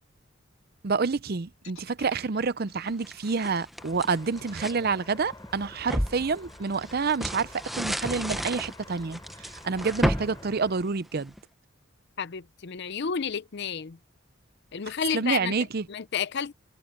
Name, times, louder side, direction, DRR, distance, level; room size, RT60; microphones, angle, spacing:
voice 1, 0.8-11.3 15.1-15.9, right 4 dB, 45° right, 0.6 m, -28 dB
sound 1, 1.6-5.7, left 9 dB, 90° left, 4.7 m, -56 dB
sound 2, 2.8-4.8 5.3-11.4, equal, ahead, 0.7 m, -33 dB
sound 3, 3.8-10.8, left 2 dB, 20° left, 6.9 m, -49 dB
voice 2, 12.2-14.0 14.7-15.5 15.9-16.5, left 7 dB, 55° left, 0.6 m, -31 dB
head